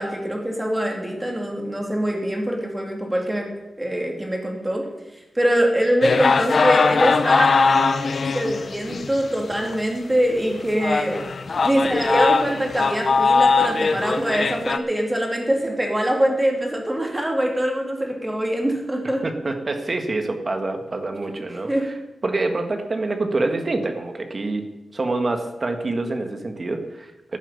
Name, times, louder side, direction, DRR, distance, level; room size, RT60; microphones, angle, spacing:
voice 1, 0.0-3.5 3.8-4.9 5.1-7.6 8.3-11.2 11.6-19.2 21.7-21.9, equal, 10° right, 1 dB, 2.6 m, -23 dB
sound 1, 6.0-9.2 9.7-9.8 10.3-10.4 10.8-14.8, left 4 dB, 45° left, 0.6 m, -20 dB
voice 2, 19.2-21.9 22.2-24.7 24.9-27.4, right 2 dB, 30° right, 6 dB, 1.5 m, -26 dB
12.5 x 7.3 x 8.3 m, 1.0 s
wide cardioid pair, 160°, 0 cm